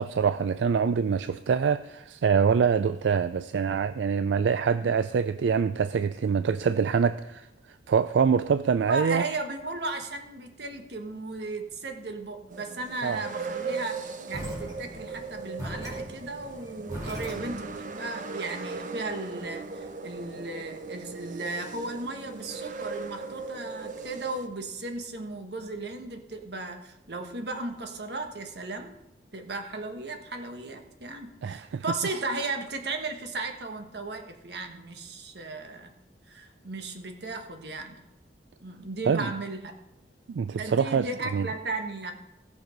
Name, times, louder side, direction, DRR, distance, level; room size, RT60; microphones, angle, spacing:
voice 1, 0.0-7.5 7.9-9.2 13.0-13.2 31.4-31.8 39.1-39.3 40.3-41.5, right 6 dB, 85° right, 0.4 m, -25 dB
voice 2, 8.9-28.9 29.3-35.9 36.3-38.0 38.6-39.7 40.6-42.1, right 2 dB, 65° right, 1.4 m, -35 dB
sound 1, 12.5-24.5, right 4 dB, 50° right, 0.8 m, -38 dB
sound 2, 14.3-17.8, equal, 20° right, 2.8 m, -40 dB
16.5 x 6.3 x 5.2 m
head